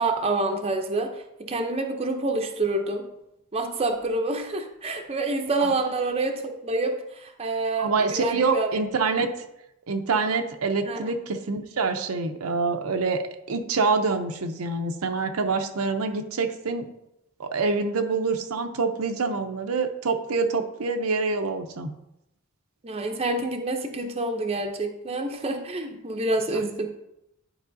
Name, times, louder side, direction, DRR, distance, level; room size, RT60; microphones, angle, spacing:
voice 1, 0.0-3.1 3.5-8.7 10.9-11.0 22.8-26.9, right 2 dB, 30° right, 4 dB, 0.6 m, -27 dB
voice 2, 7.8-9.5 9.9-13.2 13.5-16.9 17.4-21.9, right 4 dB, 90° right, 6 dB, 0.7 m, -26 dB
11.0 x 4.7 x 2.7 m, 0.86 s
head